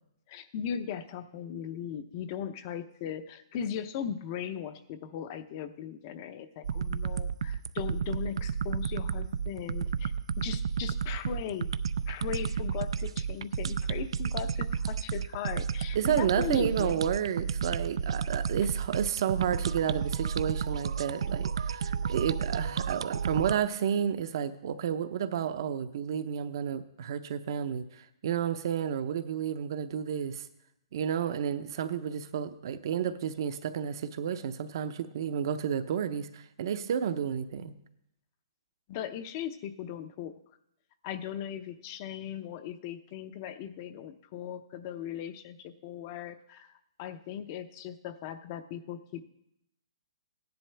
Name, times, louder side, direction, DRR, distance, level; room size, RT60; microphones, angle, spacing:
voice 1, 0.3-11.7 12.1-16.9 38.9-40.3 41.0-49.2, left 9 dB, 30° left, 12 dB, 0.6 m, -38 dB
sound 1, 6.6-23.6, right 6 dB, 80° right, 0.4 m, -32 dB
voice 2, 15.9-30.5 30.9-37.7, right 8 dB, 50° right, 11 dB, 0.7 m, -31 dB
15.0 x 10.5 x 3.4 m, 0.79 s
hypercardioid pair, 160°, 3 cm